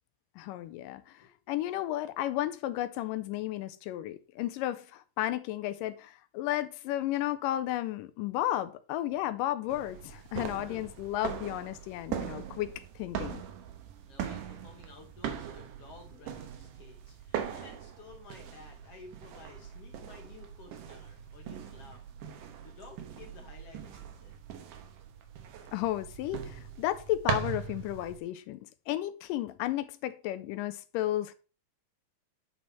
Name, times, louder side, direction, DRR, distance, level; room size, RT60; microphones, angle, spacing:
voice 1, 0.4-13.4 25.7-31.3, left 14 dB, 80° left, 2.1 m, -33 dB
sound 1, 9.7-28.2, right 8 dB, 75° right, 2.5 m, -40 dB
voice 2, 14.1-22.1 22.6-24.4, left 4 dB, 60° left, 1.6 m, -53 dB
9.5 x 4.3 x 4.3 m
omnidirectional pair, 3.9 m